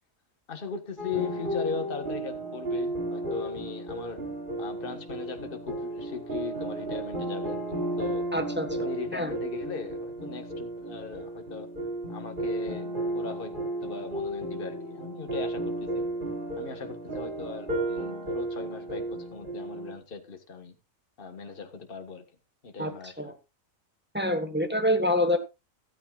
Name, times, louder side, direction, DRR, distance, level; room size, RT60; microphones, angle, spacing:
voice 1, 0.5-4.2 4.6-8.3 8.8-11.7 12.1-12.9 13.1-13.5 13.8-16.1 16.6-20.8 21.2-22.2 22.6-23.3, left 5 dB, 40° left, 6 dB, 1.7 m, -39 dB
sound 1, 1.0-19.9, right 1 dB, 35° right, 4.0 m, -33 dB
voice 2, 8.3-9.3 22.8-23.3 24.1-25.4, left 1 dB, 10° right, 6 dB, 1.3 m, -27 dB
14.0 x 13.0 x 2.4 m, 0.26 s
omnidirectional pair, 1.4 m